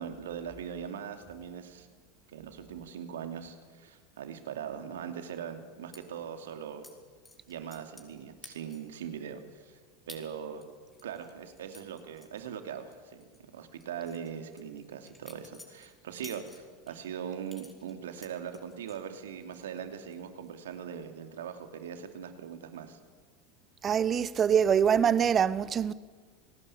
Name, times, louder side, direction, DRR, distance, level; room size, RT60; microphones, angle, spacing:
voice 1, 0.0-1.9 2.3-6.9 7.5-9.8 10.1-10.6 11.0-13.2 13.5-23.0, right 8 dB, 75° right, 2.8 m, -41 dB
sound 1, 5.9-6.0 6.8-6.9 7.3-8.1 8.4-9.0 9.4-9.5 10.1-10.2 10.6-12.9 13.2-13.4 13.8-16.9 17.5-19.0 19.4-19.8 20.1-20.5, left 2 dB, 15° left, 4.8 m, -52 dB
voice 2, 23.8-25.9, right 8 dB, 30° right, 1.1 m, -24 dB
28.5 x 19.0 x 8.7 m
hypercardioid pair, 85°, 0 cm